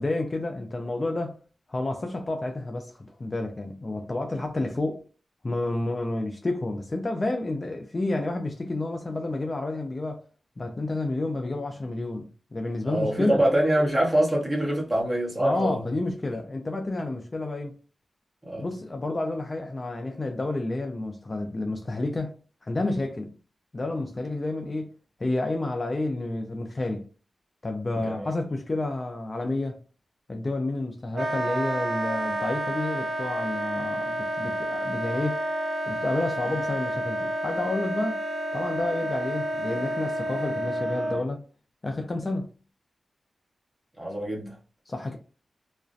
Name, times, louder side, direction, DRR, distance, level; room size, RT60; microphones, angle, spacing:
voice 1, 0.0-1.3 1.7-5.0 5.4-10.2 10.6-13.4 15.4-17.8 18.5-22.3 22.6-23.4 23.7-24.9 25.2-27.0 27.6-29.8 30.3-35.4 35.9-38.2 38.5-41.4 41.8-42.5 44.9-45.2, left 2 dB, 30° left, 0.3 m, -30 dB
voice 2, 12.8-15.8 18.4-18.7 28.0-28.3 44.0-44.5, right 1 dB, 15° right, 1.0 m, -25 dB
Wind instrument woodwind instrument, 31.1-41.3, right 1 dB, 55° right, 0.6 m, -30 dB
2.3 x 2.1 x 2.5 m
wide cardioid pair, 105°, 0 cm